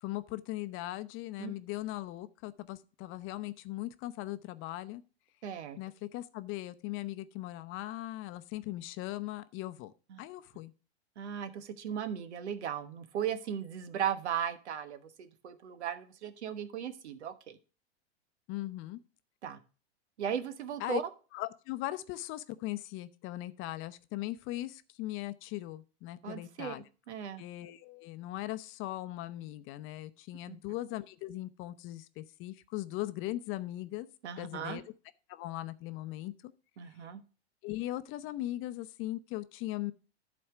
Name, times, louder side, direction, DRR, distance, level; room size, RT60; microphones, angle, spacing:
voice 1, 0.0-5.0 5.8-10.7 18.5-19.0 20.8-21.0 21.3-26.8 27.4-34.1 34.4-34.8 35.3-36.5 37.6-39.9, left 16 dB, 40° left, 0.7 m, -39 dB
voice 2, 5.4-5.8 10.1-10.2 11.2-17.6 19.4-19.6 20.2-21.0 26.2-26.7 27.1-27.4 30.5-30.6 34.2-34.8 36.8-37.2, right 8 dB, 80° right, 1.2 m, -37 dB
11.0 x 4.3 x 5.9 m
hypercardioid pair, 115°, 33 cm